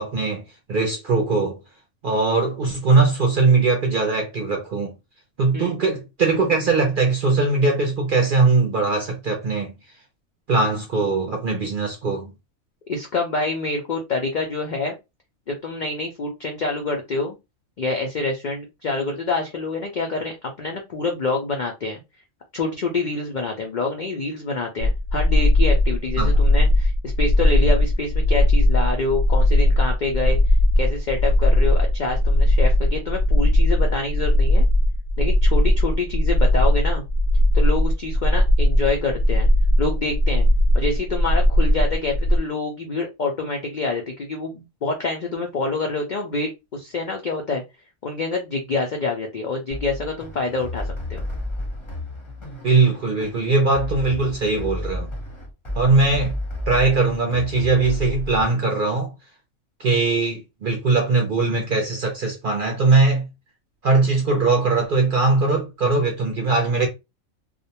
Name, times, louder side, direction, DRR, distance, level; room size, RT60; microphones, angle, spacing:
voice 1, 0.0-1.6 2.0-4.9 5.4-9.7 10.5-12.3 26.2-26.4 52.6-55.1 55.7-56.3 56.7-59.1 59.8-63.2 63.8-66.9, right 3 dB, 60° right, 0.5 m, -20 dB
voice 2, 12.9-14.9 15.5-17.4 17.8-20.3 20.6-22.0 22.5-30.4 30.8-34.6 35.2-37.0 37.5-39.5 39.8-40.5 40.7-47.6 48.0-51.2, left 3 dB, 70° left, 0.4 m, -26 dB
sound 1, 24.8-42.4, left 1 dB, 90° left, 1.1 m, -18 dB
sound 2, 49.7-58.4, left 1 dB, 30° left, 0.7 m, -32 dB
2.4 x 2.1 x 2.8 m
omnidirectional pair, 1.4 m